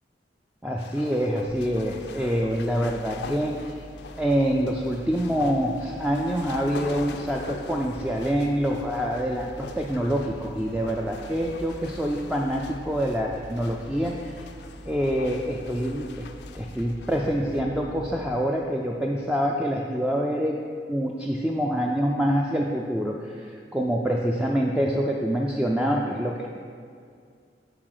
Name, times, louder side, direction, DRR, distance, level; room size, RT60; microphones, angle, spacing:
voice 1, 0.6-3.7 4.2-14.5 14.9-16.2 16.5-20.6 20.9-26.5, equal, 5° right, -1 dB, 0.3 m, -26 dB
sound 1, 0.8-17.6, left 4 dB, 75° left, 0.4 m, -43 dB
sound 2, 1.4-18.3, equal, 80° right, 1.4 m, -44 dB
7.7 x 3.9 x 6.4 m, 2.2 s
head